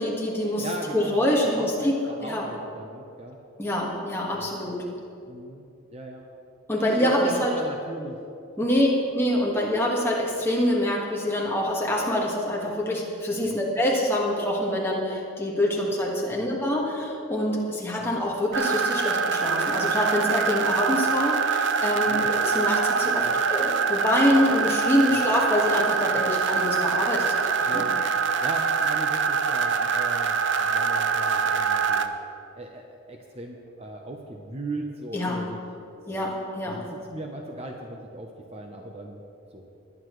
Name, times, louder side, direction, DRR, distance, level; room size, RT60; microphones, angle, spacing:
voice 1, 0.0-0.7 0.9-1.9 2.2-2.4 3.6-4.8 6.7-7.5 8.6-8.9 9.1-27.8 35.1-35.4 36.1-36.8, left 1 dB, 10° left, -3 dB, 1.7 m, -25 dB
voice 2, 0.6-3.4 4.3-4.6 5.2-5.6 5.9-6.3 7.0-8.2 13.4-13.6 16.3-16.5 18.0-18.1 22.1-22.3 23.2-23.4 26.1-26.3 27.7-28.0 28.4-32.1 32.5-35.6 36.1-36.3 36.6-39.2 39.5-39.7, right 2 dB, 30° right, 1 dB, 0.8 m, -38 dB
sound 1, 18.5-32.1, right 5 dB, 55° right, 0.5 m, -24 dB
20.0 x 9.7 x 3.2 m, 2.7 s
head